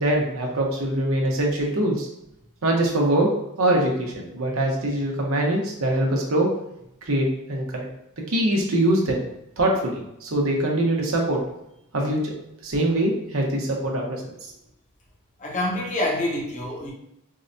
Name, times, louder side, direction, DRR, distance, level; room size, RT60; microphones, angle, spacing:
voice 1, 0.0-2.1 2.6-3.3 3.6-6.5 7.1-7.9 8.3-9.2 9.6-11.4 11.9-12.3 12.6-14.2, right 1 dB, 85° right, 0 dB, 0.8 m, -23 dB
voice 2, 15.4-16.9, left 1 dB, 35° left, -1 dB, 0.7 m, -26 dB
4.6 x 2.1 x 2.6 m, 0.82 s
head